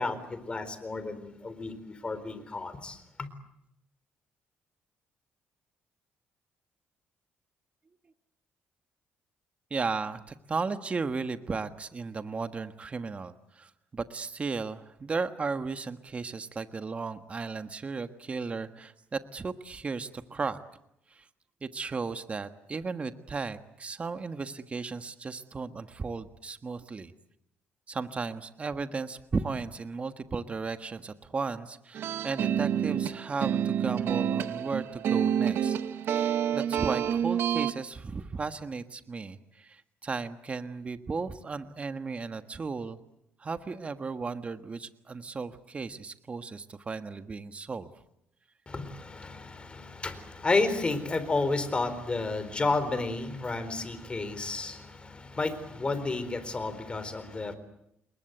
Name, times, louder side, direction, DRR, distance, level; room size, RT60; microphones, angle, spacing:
voice 1, 0.0-3.3 48.7-57.5, left 3 dB, 25° left, 12 dB, 4.1 m, -31 dB
voice 2, 9.7-20.6 21.1-21.3 21.6-27.1 27.9-35.8 36.2-43.0 43.4-47.9, right 4 dB, 30° right, 9 dB, 1.4 m, -35 dB
sound 1, 31.9-37.7, right 9 dB, 60° right, 1.4 m, -28 dB
28.5 x 22.5 x 8.1 m, 0.80 s
cardioid pair, 110°, 4 cm